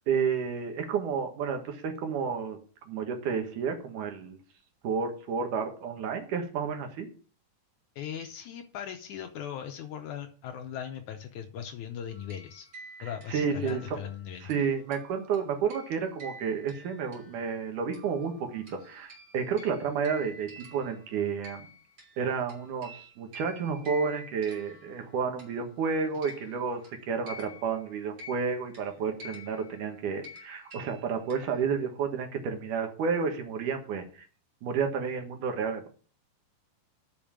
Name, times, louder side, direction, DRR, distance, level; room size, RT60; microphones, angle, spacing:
voice 1, 0.1-2.6 2.9-4.4 4.8-7.1 13.0-14.0 14.4-21.7 22.2-34.3 34.6-35.9, right 6 dB, 65° right, 5 dB, 2.7 m, -31 dB
voice 2, 8.0-12.7 13.0-14.5, left 9 dB, 75° left, 6 dB, 1.9 m, -39 dB
sound 1, 12.1-17.6 17.9-25.8 26.1-31.8, equal, 35° right, 2.5 m, -49 dB
8.8 x 5.5 x 7.3 m, 0.40 s
omnidirectional pair, 4.1 m